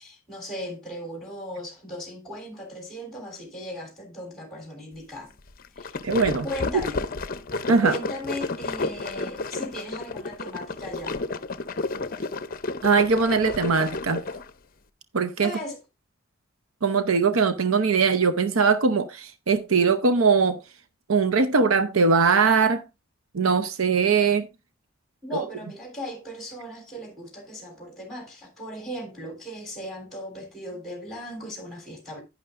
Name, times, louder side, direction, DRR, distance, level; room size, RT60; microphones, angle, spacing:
voice 1, 0.0-5.3 5.7-6.0 6.4-7.0 7.8-11.2 15.4-15.8 25.2-32.2, equal, ahead, 3.5 m, -37 dB
sound 1, 5.6-14.5, left 3 dB, 45° left, 0.6 m, -32 dB
voice 2, 6.0-6.5 7.7-7.9 12.8-14.2 15.1-15.5 16.8-20.6 21.1-22.8 23.3-24.5 25.3-25.4, right 5 dB, 80° right, 0.7 m, -21 dB
11.0 x 9.9 x 2.5 m
head